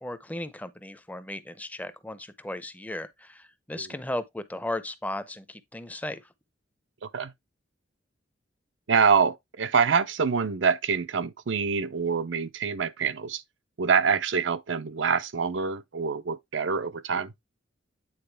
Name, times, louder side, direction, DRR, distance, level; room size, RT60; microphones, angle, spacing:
voice 1, 0.0-6.2, left 1 dB, 10° left, 0.6 m, -36 dB
voice 2, 8.9-13.4 13.8-17.3, right 5 dB, 75° right, 0.6 m, -25 dB
9.0 x 4.0 x 3.3 m
head